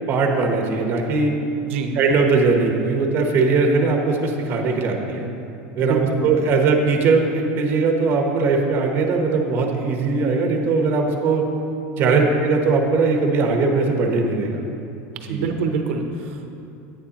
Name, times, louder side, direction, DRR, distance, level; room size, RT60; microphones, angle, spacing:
voice 1, 0.1-1.3 2.0-5.2 5.8-11.4 12.0-14.6 15.3-15.4, right 4 dB, 35° right, 2 dB, 1.0 m, -20 dB
voice 2, 1.6-1.9 5.8-6.2 12.0-12.4 15.3-16.5, right 5 dB, 85° right, 4 dB, 0.7 m, -25 dB
9.7 x 9.0 x 2.9 m, 2.8 s
supercardioid pair, 145°, 6 cm